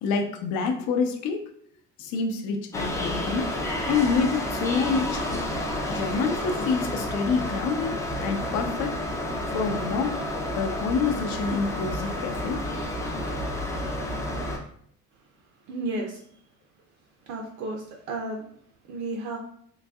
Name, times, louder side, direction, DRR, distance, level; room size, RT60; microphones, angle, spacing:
voice 1, 0.0-1.4 2.0-3.5 3.9-5.4 5.9-9.0 9.5-10.2 10.5-12.7, left 5 dB, 75° left, 5 dB, 0.6 m, -27 dB
sound 1, 2.7-14.6, left 1 dB, 10° left, 0.3 m, -30 dB
voice 2, 15.7-16.2 17.3-18.4 18.9-19.4, right 2 dB, 65° right, 1 dB, 0.5 m, -32 dB
3.9 x 2.6 x 2.3 m, 0.65 s
cardioid pair, 165°, 30 cm